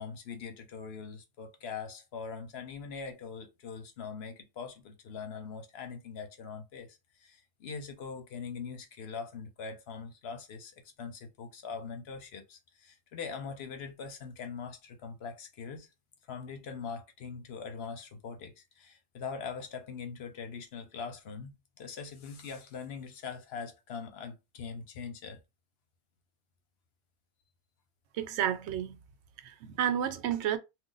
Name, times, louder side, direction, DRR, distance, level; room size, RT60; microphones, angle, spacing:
voice 1, 0.0-15.9 16.3-25.4, left 5 dB, 70° left, 0.9 m, -42 dB
voice 2, 28.1-29.0 29.4-30.6, right 10 dB, 85° right, 0.9 m, -31 dB
2.5 x 2.3 x 3.8 m
omnidirectional pair, 1.1 m